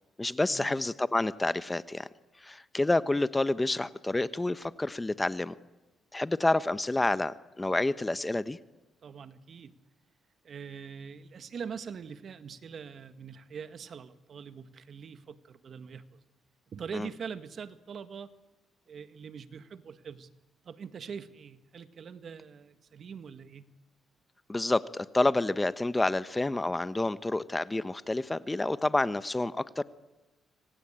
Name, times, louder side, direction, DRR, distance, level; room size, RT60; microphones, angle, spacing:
voice 1, 0.2-2.1 2.4-5.5 6.1-8.6 16.9-17.1 24.5-29.8, left 2 dB, 15° left, 14 dB, 0.9 m, -29 dB
voice 2, 9.0-9.8 10.4-16.2 16.7-18.3 18.9-20.3 20.6-23.7, right 6 dB, 55° right, 11 dB, 1.6 m, -43 dB
26.5 x 25.0 x 8.9 m, 1.1 s
cardioid pair, 90°, 0 cm